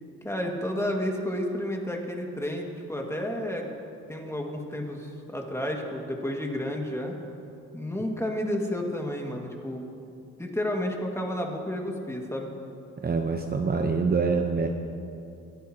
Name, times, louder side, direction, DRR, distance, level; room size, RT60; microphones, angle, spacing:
voice 1, 0.2-3.7 4.1-7.1 7.7-9.9 10.4-12.5, left 1 dB, 10° left, 0 dB, 2.0 m, -31 dB
voice 2, 13.0-14.7, right 4 dB, 30° right, 4 dB, 0.8 m, -25 dB
26.5 x 11.0 x 2.9 m, 2.6 s
cardioid pair, 90°, 30 cm